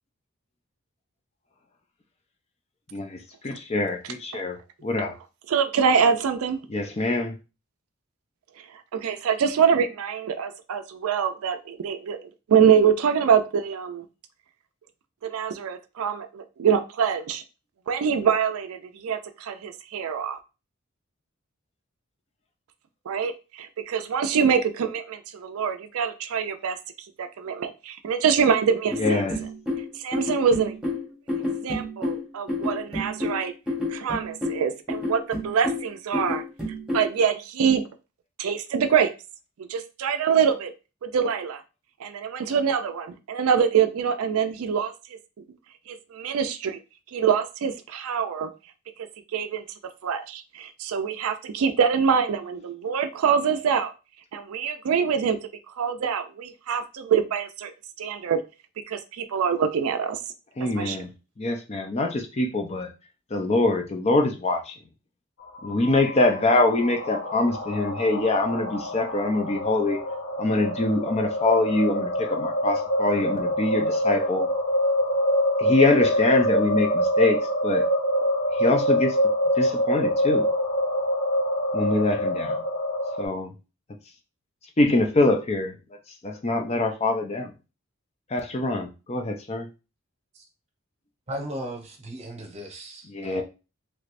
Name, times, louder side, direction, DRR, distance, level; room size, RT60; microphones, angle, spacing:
voice 1, 2.9-5.1 6.7-7.3 29.0-29.4 60.6-61.1 61.4-62.9 63.3-64.8 65.6-70.0 70.4-74.5 75.6-77.8 78.5-79.2 79.6-80.5 81.7-82.6 83.2-83.5 84.8-85.8 86.2-87.5 88.3-89.7 93.1-93.4, left 2 dB, 30° left, 3 dB, 0.5 m, -24 dB
voice 2, 5.5-6.6 8.9-14.0 15.2-17.4 17.9-20.4 23.1-26.8 27.2-29.3 30.0-30.7 31.6-33.5 33.9-36.4 36.9-37.8 38.4-39.1 39.6-40.7 41.0-41.6 42.0-44.9 45.9-46.8 47.1-48.5 49.3-49.6 50.0-53.9 54.3-55.4 55.8-57.7 58.0-58.4 58.9-60.2 60.7-61.0, right 7 dB, 80° right, 9 dB, 0.4 m, -24 dB
sound 1, 28.9-37.1, left 2 dB, 5° right, 1.0 m, -30 dB
sound 2, 65.4-83.3, equal, 80° left, 0.9 m, -25 dB
voice 3, 91.3-93.4, right 1 dB, 30° right, 2 dB, 0.8 m, -37 dB
3.2 x 3.1 x 2.5 m, 0.30 s
head